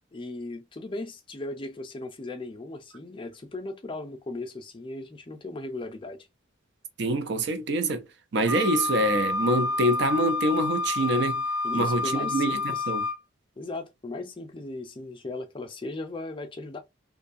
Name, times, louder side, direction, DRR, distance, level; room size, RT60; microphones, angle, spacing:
voice 1, 0.1-6.3 11.6-12.9 13.6-16.8, left 2 dB, 25° left, 0.4 m, -37 dB
voice 2, 7.0-8.0 8.3-11.4 11.7-13.0, right 1 dB, 60° right, 0.5 m, -25 dB
Wind instrument woodwind instrument, 8.5-13.2, left 3 dB, 85° right, 1.3 m, -29 dB
2.6 x 2.3 x 2.5 m
head